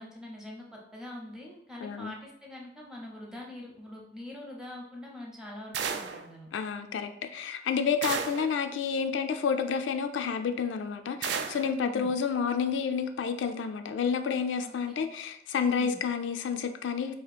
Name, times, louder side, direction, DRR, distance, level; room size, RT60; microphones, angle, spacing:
voice 1, 0.0-6.5 11.7-12.1 14.6-14.7 15.8-16.0, left 1 dB, 5° right, -2 dB, 0.7 m, -44 dB
voice 2, 1.8-2.1 6.5-17.2, left 6 dB, 80° left, 8 dB, 0.3 m, -30 dB
sound 1, 5.7-6.3 8.0-8.5 11.2-11.7, right 6 dB, 65° right, 0.3 m, -33 dB
2.8 x 2.5 x 4.1 m, 0.74 s
head